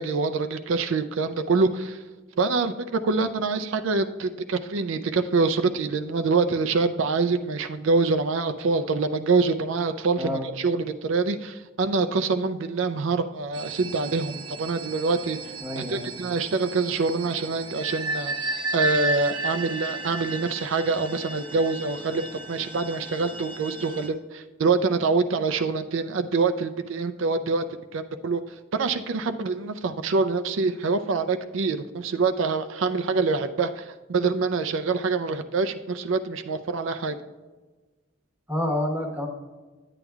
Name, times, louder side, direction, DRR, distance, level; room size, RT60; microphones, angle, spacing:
voice 1, 0.0-2.0 2.4-15.4 15.8-18.3 18.7-27.6 27.9-28.4 28.7-37.2, right 4 dB, 80° right, 9 dB, 0.4 m, -25 dB
sound 1, 13.5-24.1, right 2 dB, 25° right, 0.6 m, -33 dB
voice 2, 15.6-16.1 38.5-39.3, left 1 dB, 10° right, 3 dB, 1.1 m, -28 dB
9.9 x 8.7 x 2.3 m, 1.3 s
head